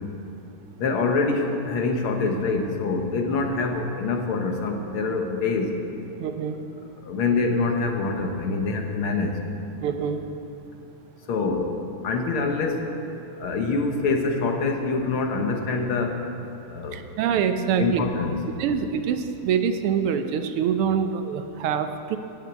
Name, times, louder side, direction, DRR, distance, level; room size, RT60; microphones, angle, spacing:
voice 1, 0.8-5.7 7.0-9.4 11.3-11.8 12.0-12.8 13.4-16.2 16.7-17.0 17.8-18.4, left 3 dB, 75° left, 4 dB, 1.9 m, -25 dB
voice 2, 6.2-6.6 9.8-10.2 16.9-18.0 18.6-22.2, right 7 dB, 85° right, 8 dB, 1.7 m, -25 dB
16.5 x 5.7 x 8.0 m, 2.9 s
omnidirectional pair, 2.4 m